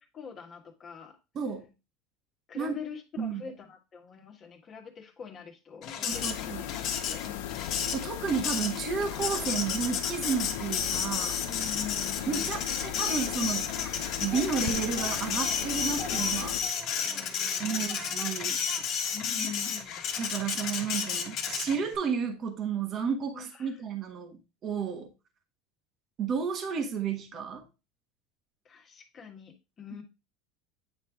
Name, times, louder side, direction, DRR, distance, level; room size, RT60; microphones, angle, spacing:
voice 1, 0.0-1.2 2.5-7.8 11.4-12.6 16.6-16.7 17.0-17.9 19.1-20.1 23.3-23.8 28.6-30.0, left 6 dB, 30° left, 1.4 m, -44 dB
voice 2, 1.3-1.7 2.5-2.8 3.2-3.4 6.0-6.7 7.9-11.4 12.3-13.7 14.2-16.6 17.6-18.6 20.2-25.1 26.2-27.6, right 6 dB, 40° right, 1.2 m, -32 dB
Printer, 5.8-21.9, left 7 dB, 45° left, 1.3 m, -32 dB
sound 1, 6.1-16.6, left 13 dB, 80° left, 0.6 m, -37 dB
Singing, 13.6-14.0 14.3-15.6 15.9-17.2 17.6-18.3 18.7-18.8, equal, ahead, 1.4 m, -46 dB
8.8 x 3.3 x 3.5 m
supercardioid pair, 135°, 0 cm